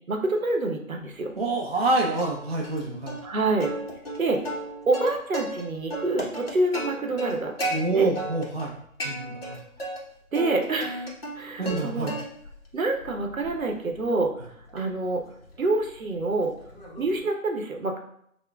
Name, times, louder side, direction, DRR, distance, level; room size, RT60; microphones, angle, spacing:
voice 1, 0.1-1.3 3.2-3.7 4.2-4.4 4.9-8.1 10.3-12.1 12.7-14.3 14.7-15.2 15.6-16.5 17.0-18.0, right 2 dB, 75° right, 2 dB, 0.9 m, -27 dB
voice 2, 1.4-3.2 7.7-8.7 9.0-9.6 11.6-12.1, right 2 dB, 45° right, -1 dB, 0.5 m, -27 dB
Plucked string instrument, 2.2-2.8 3.1-3.2 3.6-5.6 5.9-7.8 8.2-8.7 9.0-10.0 10.3-11.8 12.1-12.6 13.0-17.2, right 1 dB, 45° left, 0.9 m, -34 dB
6.0 x 2.2 x 2.2 m, 0.70 s
figure-of-eight pair, 160°, 42 cm